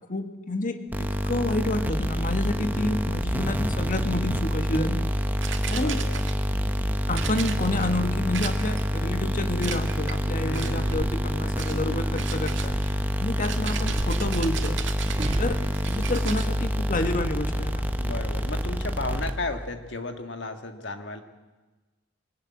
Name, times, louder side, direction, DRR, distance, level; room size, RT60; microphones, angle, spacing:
voice 1, 0.1-5.1 5.7-6.0 7.1-12.7 13.2-14.8 15.4-15.6 15.9-17.9, left 1 dB, 45° left, 7 dB, 1.6 m, -29 dB
sound 1, 0.9-19.7, equal, 10° right, 1.1 m, -27 dB
voice 2, 2.7-3.2 5.7-6.2 10.3-11.1 11.4-12.0 18.0-21.2, left 2 dB, 65° left, 6 dB, 1.9 m, -35 dB
sound 2, 5.4-6.6 7.1-7.9 8.3-9.0 9.6-10.2 10.5-11.0 11.6-11.8 12.2-16.5, right 8 dB, 70° right, 2.0 m, -37 dB
sound 3, 10.8-13.2 13.8-16.9 17.3-17.8, right 2 dB, 30° right, 0.6 m, -37 dB
24.0 x 18.5 x 8.8 m, 1.2 s
head